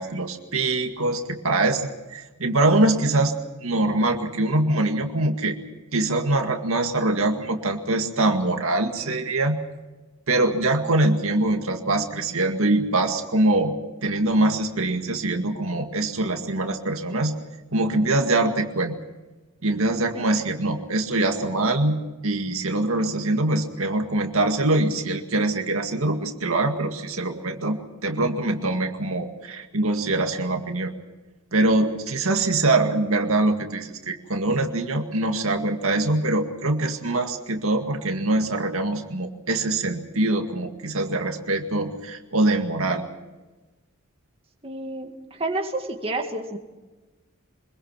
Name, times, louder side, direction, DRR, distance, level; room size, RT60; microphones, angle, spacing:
voice 1, 0.0-3.3 3.6-5.6 5.9-9.6 10.3-13.7 14.0-17.4 17.7-18.9 19.6-30.9 31.5-43.0, right 2 dB, 70° right, 4 dB, 2.1 m, -23 dB
voice 2, 44.6-46.6, right 2 dB, 25° right, 3 dB, 2.1 m, -30 dB
24.5 x 22.5 x 5.9 m, 1.2 s
head